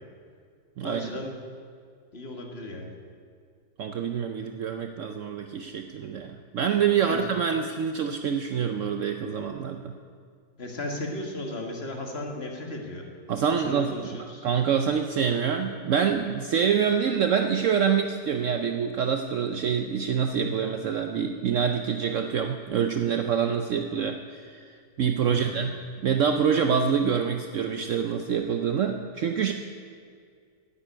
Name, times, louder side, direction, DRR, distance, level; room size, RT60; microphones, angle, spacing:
voice 1, 0.8-1.3 2.1-3.0 7.0-7.2 10.6-13.0 13.5-14.5 25.3-25.7, left 1 dB, 35° left, 2 dB, 1.6 m, -36 dB
voice 2, 3.8-9.9 13.3-29.5, right 7 dB, 85° right, 6 dB, 0.6 m, -26 dB
9.8 x 8.4 x 9.4 m, 2.2 s
omnidirectional pair, 2.0 m